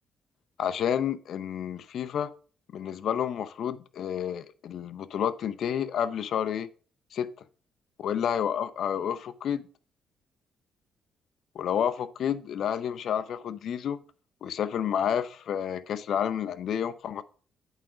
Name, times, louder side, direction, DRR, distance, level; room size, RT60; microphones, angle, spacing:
voice 1, 0.6-2.3 2.7-6.7 7.1-7.3 8.0-9.6 11.5-14.0 14.4-17.2, left 9 dB, 65° left, 0.6 m, -30 dB
8.3 x 5.0 x 4.9 m
cardioid pair, 90°, 0 cm